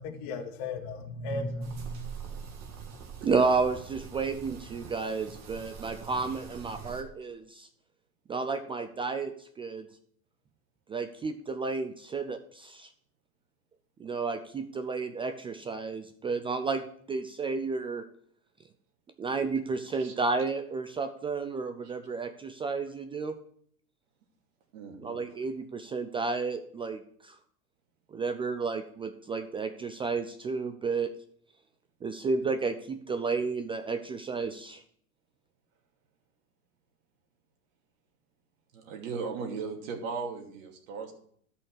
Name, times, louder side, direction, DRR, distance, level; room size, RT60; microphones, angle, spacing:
voice 1, 0.0-2.0, left 2 dB, 50° left, 1.8 m, -35 dB
sound 1, 1.6-7.0, right 6 dB, 35° right, 2.0 m, -44 dB
voice 2, 3.2-7.7 8.3-9.9 10.9-12.9 14.0-18.0 19.2-23.3 25.0-27.3 28.1-31.1 32.0-34.8, right 4 dB, 10° right, 0.4 m, -32 dB
voice 3, 24.7-25.2 38.7-41.1, right 5 dB, 60° right, 2.9 m, -37 dB
13.0 x 5.6 x 6.4 m
hypercardioid pair, 110°, 44 cm